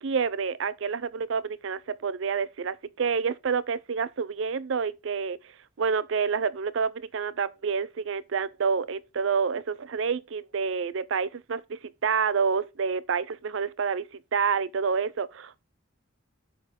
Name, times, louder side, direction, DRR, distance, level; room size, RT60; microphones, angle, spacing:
voice 1, 0.0-5.4 5.8-14.0 14.3-15.6, right 5 dB, 65° right, 0.5 m, -28 dB
8.1 x 6.4 x 3.7 m
head